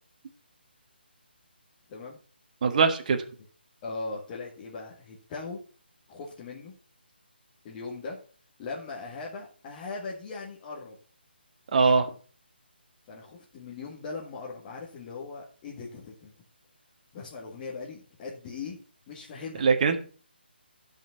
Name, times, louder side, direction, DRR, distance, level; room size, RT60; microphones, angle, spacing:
voice 1, 1.9-2.2 3.8-5.6 6.1-6.7 7.6-8.2 8.6-11.0 13.1-16.3 17.1-18.8 19.1-19.7, left 4 dB, 25° left, -6 dB, 1.9 m, -39 dB
voice 2, 2.6-3.2 11.7-12.0 19.6-20.0, right 5 dB, 45° right, 6 dB, 1.4 m, -21 dB
12.0 x 5.4 x 5.7 m, 0.40 s
figure-of-eight pair, 150°, 6 cm